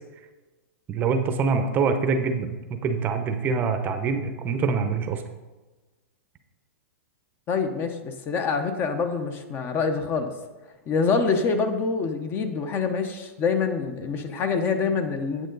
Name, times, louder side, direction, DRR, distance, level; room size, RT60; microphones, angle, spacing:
voice 1, 0.9-5.2, right 5 dB, 25° right, 7 dB, 0.7 m, -25 dB
voice 2, 7.5-10.3 10.9-15.5, left 5 dB, 30° left, 7 dB, 0.9 m, -25 dB
9.1 x 7.7 x 3.9 m, 1.2 s
hypercardioid pair, 140°, 8 cm